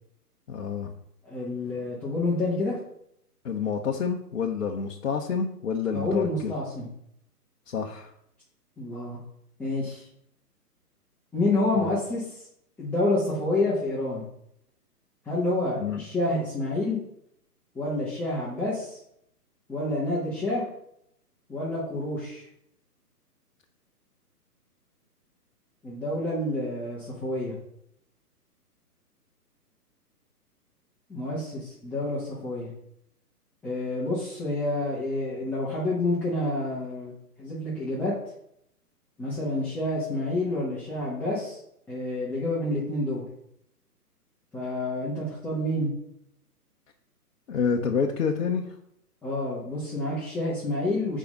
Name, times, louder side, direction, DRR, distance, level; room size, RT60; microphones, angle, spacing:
voice 1, 0.5-0.9 3.4-6.5 7.7-8.1 11.7-11.9 15.8-16.0 47.5-48.7, left 6 dB, 55° left, 0 dB, 1.0 m, -28 dB
voice 2, 1.2-2.8 5.9-6.9 8.8-9.2 9.6-10.1 11.3-12.4 12.8-14.2 15.2-17.0 17.7-19.0 19.7-20.6 21.5-22.4 25.8-27.5 31.1-32.7 33.6-37.1 37.4-38.1 39.2-41.6 41.9-43.2 44.5-45.9 49.2-51.2, left 2 dB, 5° left, -10 dB, 1.3 m, -28 dB
6.8 x 5.0 x 5.3 m, 0.75 s
figure-of-eight pair, 135°, 48 cm